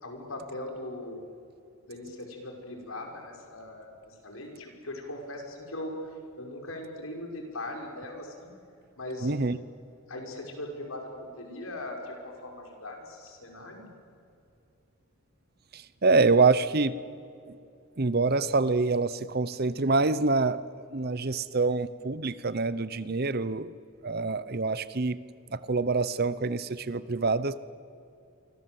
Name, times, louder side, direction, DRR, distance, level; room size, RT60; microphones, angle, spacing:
voice 1, 0.0-1.3 1.9-5.9 6.4-8.5 9.0-9.3 10.1-13.9, left 1 dB, 75° left, 2 dB, 5.5 m, -40 dB
voice 2, 9.2-9.6 15.7-16.9 17.5-17.6 18.0-23.7 24.0-25.2 25.5-27.6, right 3 dB, 45° right, 16 dB, 0.8 m, -26 dB
29.0 x 24.0 x 7.7 m, 2.6 s
head